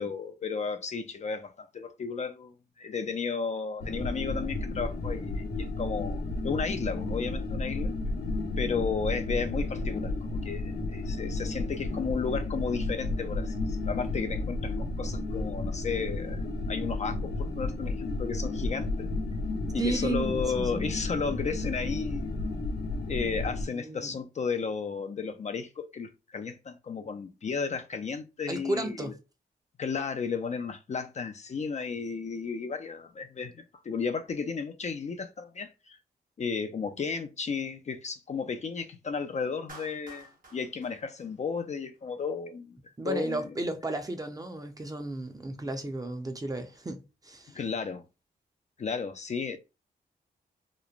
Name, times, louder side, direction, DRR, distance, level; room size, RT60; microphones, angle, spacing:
voice 1, 0.0-7.9 8.6-19.1 19.7-22.3 23.1-29.1 29.8-36.0 36.4-42.8 43.0-43.5 47.5-48.0 48.8-49.6, left 5 dB, 45° left, 0.4 m, -33 dB
sound 1, 3.8-23.6, left 2 dB, 75° left, 0.8 m, -32 dB
voice 2, 19.8-20.9 23.7-24.2 28.5-29.1 43.0-47.6, right 2 dB, 20° right, 0.6 m, -33 dB
Clapping, 39.7-42.0, right 3 dB, 55° right, 1.0 m, -51 dB
3.0 x 2.1 x 2.4 m
cardioid pair, 70°, 17 cm